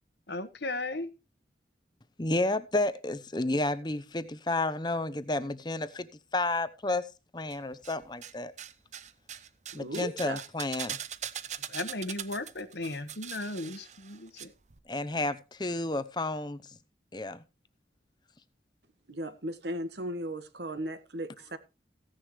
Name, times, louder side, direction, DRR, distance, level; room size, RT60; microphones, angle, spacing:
voice 1, 0.3-1.1 11.7-14.5, left 2 dB, 65° left, 1.3 m, -36 dB
voice 2, 2.2-7.1 7.3-8.5 9.7-11.0 14.9-16.6 17.1-17.4, left 2 dB, 25° left, 0.8 m, -31 dB
sound 1, 7.5-8.3 8.6-14.5 14.7-14.8, right 9 dB, 40° right, 0.7 m, -41 dB
voice 3, 9.7-10.4 19.1-21.6, right 1 dB, 70° right, 1.5 m, -36 dB
16.0 x 10.0 x 3.2 m
head